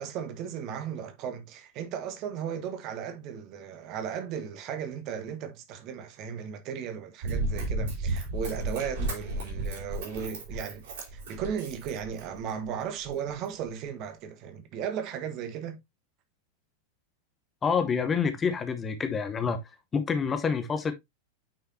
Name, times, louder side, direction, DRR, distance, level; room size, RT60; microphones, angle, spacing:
voice 1, 0.0-10.8 11.1-15.8, right 8 dB, 40° right, 1.6 m, -36 dB
Run, 7.2-12.5 13.1-13.2, right 2 dB, 55° right, 4.2 m, -33 dB
voice 2, 17.6-19.6 19.9-20.9, left 6 dB, 20° left, 1.0 m, -27 dB
8.9 x 5.6 x 2.7 m
figure-of-eight pair, 90°, 0 cm